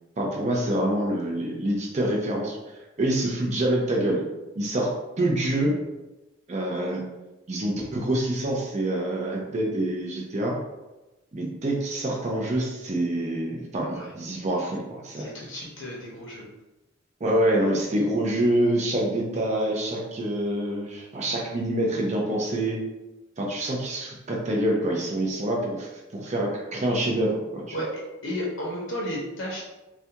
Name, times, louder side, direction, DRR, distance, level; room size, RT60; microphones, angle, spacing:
voice 1, 0.2-2.6 3.0-4.2 4.5-5.8 6.5-7.0 7.5-10.6 11.3-15.3 17.2-22.8 23.4-27.7, right 1 dB, 35° right, -1 dB, 0.5 m, -26 dB
voice 2, 15.1-16.5 27.7-29.6, equal, 75° left, -4 dB, 0.6 m, -33 dB
2.3 x 2.2 x 2.7 m, 1.0 s
head